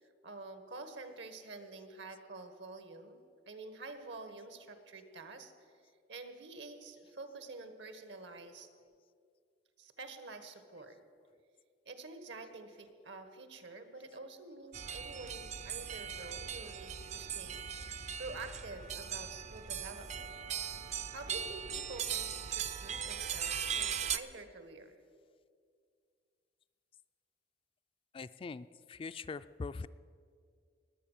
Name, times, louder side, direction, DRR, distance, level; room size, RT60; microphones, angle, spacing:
voice 1, 0.0-3.2 3.5-5.5 6.1-8.7 9.8-11.0 11.8-20.4 21.1-25.0, right 3 dB, 75° right, 9 dB, 1.4 m, -48 dB
sound 1, 14.7-24.2, right 7 dB, 40° right, 0.5 m, -39 dB
voice 2, 28.1-29.9, left 4 dB, 30° left, 13 dB, 0.3 m, -42 dB
20.5 x 8.2 x 7.2 m, 2.2 s
head